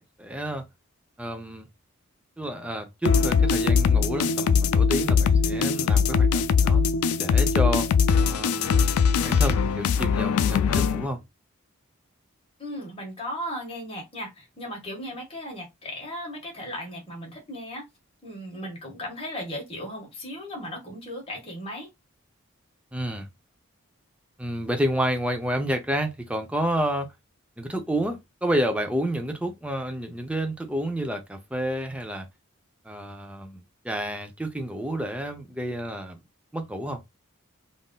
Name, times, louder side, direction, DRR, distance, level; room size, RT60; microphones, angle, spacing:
voice 1, 0.2-0.6 1.2-1.7 2.4-6.8 7.2-7.9 8.3-8.9 9.2-11.2 22.9-23.3 24.4-27.1 27.6-32.3 32.8-36.2 36.5-37.0, equal, 5° right, 0.5 m, -30 dB
sound 1, 3.0-11.1, left 6 dB, 85° left, 0.3 m, -21 dB
voice 2, 12.6-17.8 18.2-21.9, equal, 25° left, 1.5 m, -36 dB
3.6 x 2.5 x 2.2 m
head